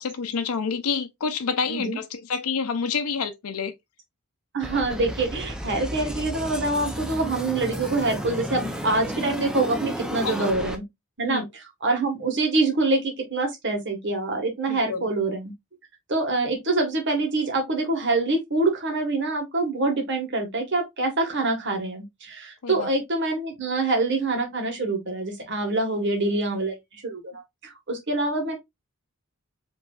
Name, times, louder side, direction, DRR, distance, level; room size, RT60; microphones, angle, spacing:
voice 1, 0.0-3.7 10.2-10.5 11.3-11.5 14.7-15.1 22.6-22.9, left 5 dB, 80° left, 0.5 m, -28 dB
voice 2, 4.5-10.8 11.2-15.5 16.1-28.6, right 2 dB, 55° right, 1.5 m, -25 dB
sound 1, 4.6-10.8, equal, 5° right, 0.5 m, -33 dB
5.2 x 3.1 x 2.4 m
head